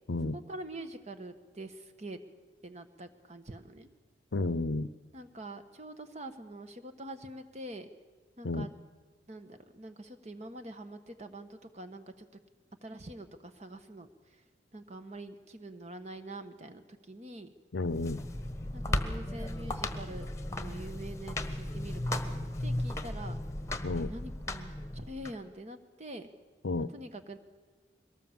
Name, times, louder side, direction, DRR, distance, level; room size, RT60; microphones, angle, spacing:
voice 1, 0.3-2.2 2.6-3.9 5.1-7.9 8.4-8.7 9.3-12.3 12.8-14.4 14.7-17.5 18.7-20.3 20.6-23.4 24.0-26.3 26.8-27.4, right 1 dB, 40° right, 8 dB, 1.4 m, -45 dB
voice 2, 4.3-4.9 8.4-8.7 17.7-18.2 23.8-24.1 26.6-26.9, left 2 dB, 85° left, 16 dB, 0.7 m, -31 dB
sound 1, 17.8-25.3, left 1 dB, 15° left, 1.2 m, -36 dB
23.0 x 19.0 x 7.4 m, 1.3 s
head